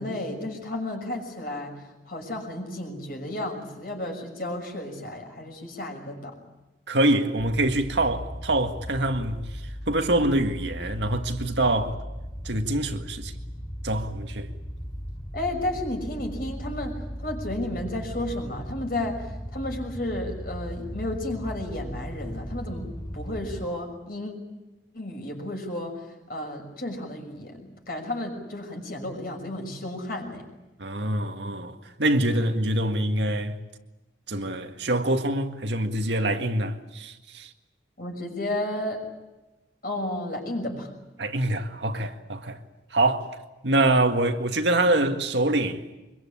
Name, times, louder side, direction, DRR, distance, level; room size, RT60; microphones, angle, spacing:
voice 1, 0.0-1.8 2.1-6.4 15.3-19.2 19.5-24.3 24.9-26.0 26.3-30.4 38.0-39.0 39.8-40.9, left 1 dB, 55° left, 6.2 m, -32 dB
voice 2, 6.9-9.4 9.9-12.0 12.4-13.3 13.8-14.5 30.8-33.6 34.3-37.5 41.2-42.6 42.9-43.4 43.6-45.8, right 1 dB, 80° right, 1.9 m, -25 dB
sound 1, 7.4-23.7, equal, 25° left, 6.8 m, -37 dB
24.5 x 22.5 x 8.7 m
head